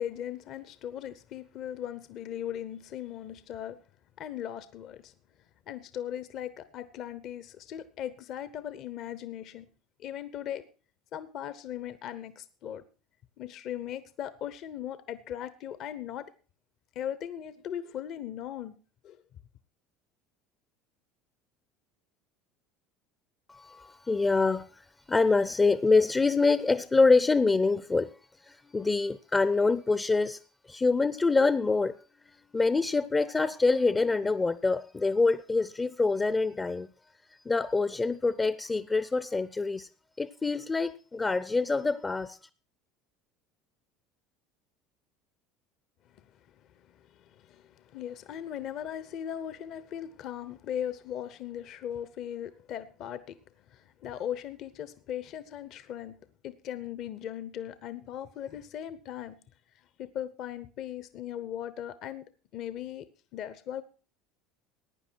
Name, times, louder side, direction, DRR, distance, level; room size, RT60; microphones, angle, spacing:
voice 1, 0.0-3.8 4.2-5.1 5.7-9.7 10.0-10.6 11.1-12.8 13.4-16.3 16.9-18.8 19.0-19.2 46.8-53.4 53.7-56.2 56.4-59.4 59.7-62.2 62.5-63.0 63.3-63.8, left 10 dB, 55° left, 0.9 m, -38 dB
voice 2, 23.5-28.1 28.4-32.0 32.5-36.9 37.5-39.9 40.2-42.4, left 3 dB, 20° left, 0.6 m, -25 dB
15.5 x 9.8 x 4.6 m
hypercardioid pair, 75°, 0 cm